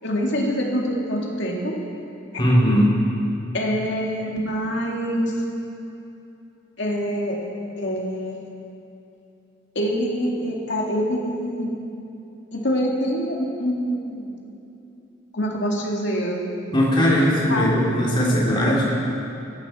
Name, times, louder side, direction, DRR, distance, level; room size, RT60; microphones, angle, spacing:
voice 1, 0.0-1.8 2.3-2.4 3.5-5.4 6.8-7.4 7.8-8.4 9.7-11.7 12.5-14.5 15.3-16.4 17.1-17.8 18.1-18.8, equal, 60° left, -1 dB, 2.4 m, -25 dB
voice 2, 2.4-2.9 16.7-18.8, equal, 25° left, -5 dB, 3.2 m, -19 dB
17.0 x 14.5 x 4.4 m, 2.8 s
head